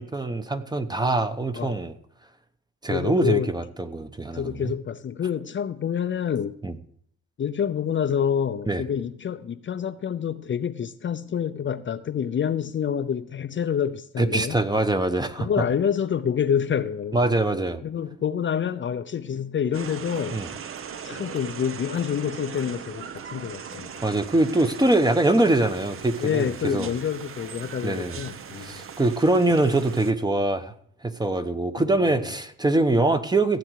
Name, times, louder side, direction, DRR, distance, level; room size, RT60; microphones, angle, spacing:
voice 1, 0.0-1.9 2.8-4.7 6.6-6.7 8.7-8.8 14.2-15.5 17.1-17.8 20.3-20.5 24.0-26.9 27.8-28.2 28.6-30.7 31.0-33.6, right 2 dB, 15° right, 0.9 m, -23 dB
voice 2, 2.9-3.5 4.3-6.6 7.4-14.6 15.4-17.3 17.8-20.4 21.0-24.1 26.2-28.8 31.9-32.2, left 8 dB, 40° left, 0.6 m, -27 dB
sound 1, 19.7-30.1, right 7 dB, 45° right, 0.8 m, -39 dB
16.0 x 7.8 x 4.7 m
cardioid pair, 90°, 30 cm